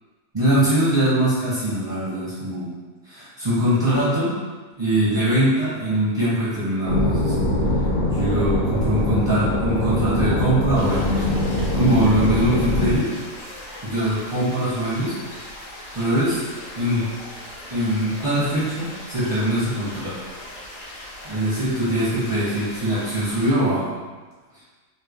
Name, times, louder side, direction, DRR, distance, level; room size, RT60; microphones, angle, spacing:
voice 1, 0.3-2.7 3.1-4.4 4.8-7.3 8.1-11.5 11.7-13.1 13.8-15.2 15.9-16.5 16.7-17.1 17.7-20.2 21.2-23.9, right 1 dB, 25° right, -11 dB, 0.6 m, -22 dB
sound 1, 6.8-13.0, left 1 dB, 60° left, 0.6 m, -22 dB
sound 2, 10.7-23.5, left 1 dB, 90° left, 1.5 m, -39 dB
3.4 x 2.1 x 3.5 m, 1.3 s
omnidirectional pair, 1.7 m